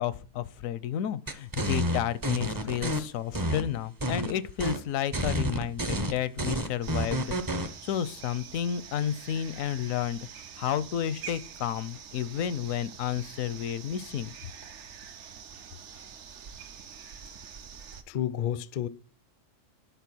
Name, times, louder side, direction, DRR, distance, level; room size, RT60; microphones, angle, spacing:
voice 1, 0.0-10.2 10.6-14.3, left 10 dB, 80° left, 1.0 m, -31 dB
sound 1, 1.3-3.0 3.3-4.3 4.6-4.8 5.1-7.7, right 1 dB, 25° right, 0.5 m, -29 dB
sound 2, 6.8-18.0, right 7 dB, 65° right, 1.1 m, -46 dB
voice 2, 17.9-18.9, left 10 dB, 60° left, 0.5 m, -32 dB
10.5 x 4.4 x 6.1 m
omnidirectional pair, 1.4 m